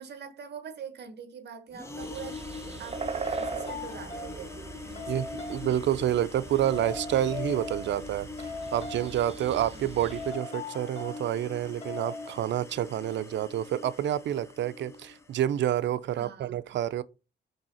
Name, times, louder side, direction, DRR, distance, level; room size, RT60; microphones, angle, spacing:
voice 1, 0.0-2.4 2.8-5.3 9.7-9.8 16.1-16.6, right 7 dB, 70° right, 1.4 m, -43 dB
sound 1, 1.7-15.7, left 4 dB, 15° left, 0.8 m, -43 dB
sound 2, 2.0-10.3, right 5 dB, 35° right, 0.6 m, -40 dB
sound 3, 2.2-2.4 3.2-4.5 5.0-5.7 6.7-8.1 8.4-9.3 10.1-11.3 11.8-12.4, left 4 dB, 40° left, 2.9 m, -39 dB
voice 2, 5.1-8.3 8.7-17.0, right 11 dB, 85° right, 0.5 m, -28 dB
5.4 x 3.9 x 5.5 m
cardioid pair, 125°, 18 cm